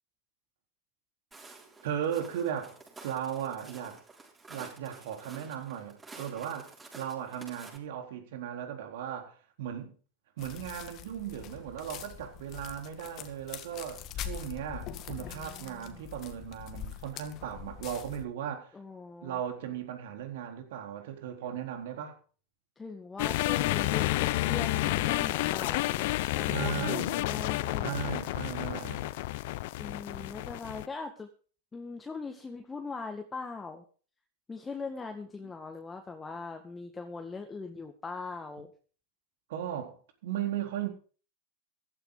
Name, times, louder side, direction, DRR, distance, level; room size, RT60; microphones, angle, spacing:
Walk footsteps, 1.3-7.8, right 3 dB, 15° right, 6.5 m, -50 dB
voice 1, 1.8-2.8 3.0-4.0 4.5-9.9 10.4-18.7 19.2-22.2 26.5-27.4 27.8-29.1 39.5-40.0 40.2-40.9, right 9 dB, 65° right, 4.0 m, -37 dB
sound 1, 10.4-18.2, left 9 dB, 45° left, 2.1 m, -43 dB
voice 2, 15.2-16.0 18.7-19.4 22.8-28.0 29.8-31.3 31.7-33.8 34.5-38.7, left 4 dB, 15° left, 2.0 m, -41 dB
sound 2, 23.2-30.9, left 18 dB, 60° left, 0.8 m, -30 dB
15.5 x 13.0 x 4.0 m
hypercardioid pair, 95°, 0 cm